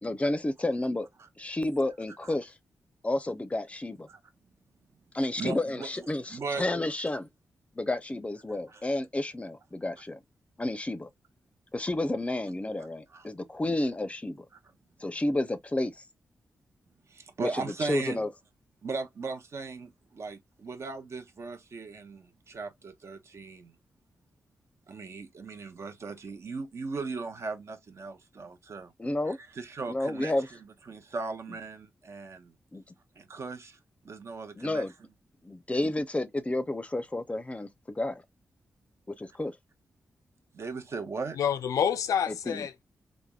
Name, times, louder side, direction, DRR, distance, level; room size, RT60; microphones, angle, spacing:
voice 1, 0.0-1.1 1.4-2.5 3.0-4.1 5.1-7.3 7.7-10.2 10.6-11.1 11.7-14.5 15.0-16.0 17.6-18.3 29.0-29.4 29.9-30.5 32.7-32.8 34.6-34.9 35.4-38.2 39.2-39.6 42.3-42.7, left 1 dB, 20° left, 0.5 m, -31 dB
voice 2, 5.4-6.7 8.7-8.9 13.1-13.3 17.1-18.2 18.8-23.8 24.9-28.9 29.3-30.3 30.6-32.5 33.2-33.8 34.0-34.9 40.5-41.4, right 4 dB, 55° right, 0.8 m, -38 dB
voice 3, 41.4-42.8, left 8 dB, 85° left, 0.4 m, -28 dB
3.3 x 2.1 x 2.3 m
cardioid pair, 60°, 6 cm